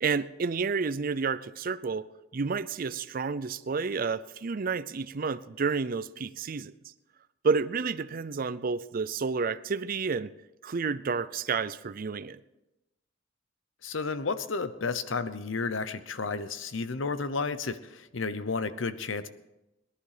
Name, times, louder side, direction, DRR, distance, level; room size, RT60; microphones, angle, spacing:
voice 1, 0.0-2.0 2.3-6.7 7.4-10.3 10.6-12.4, right 5 dB, 45° right, 16 dB, 0.5 m, -30 dB
voice 2, 13.8-19.3, left 4 dB, 80° left, 13 dB, 0.9 m, -32 dB
19.0 x 11.5 x 5.0 m, 0.97 s
head